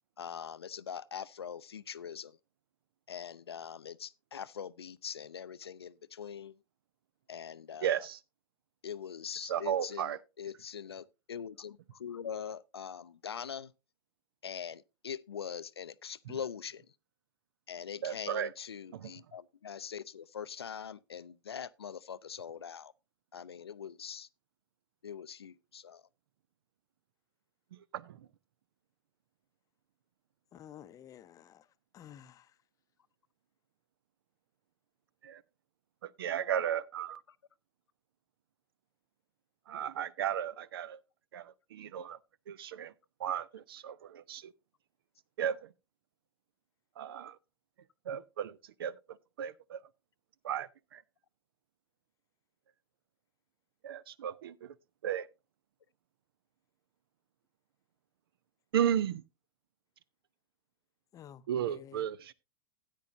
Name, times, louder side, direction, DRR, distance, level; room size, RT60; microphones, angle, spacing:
voice 1, 0.2-2.4 3.1-6.5 7.3-7.9 8.8-13.7 14.4-16.9 17.7-22.9 23.3-24.3 25.0-26.0, left 7 dB, 85° left, 0.4 m, -43 dB
voice 2, 7.8-8.2 9.4-10.2 16.3-16.4 18.0-18.5 18.9-19.1 27.7-28.3 35.2-35.4 36.0-37.2 39.7-41.0 41.3-42.2 42.5-42.9 43.2-44.5 45.4-45.7 47.0-47.4 48.1-48.9 49.4-49.8 50.4-51.0 53.8-54.7 55.0-55.3 58.7-59.2 61.5-62.3, right 9 dB, 65° right, 0.5 m, -34 dB
voice 3, 30.5-31.7 31.9-32.5 61.1-62.1, left 10 dB, 25° left, 0.6 m, -52 dB
13.0 x 9.0 x 2.6 m
figure-of-eight pair, 95°, 13 cm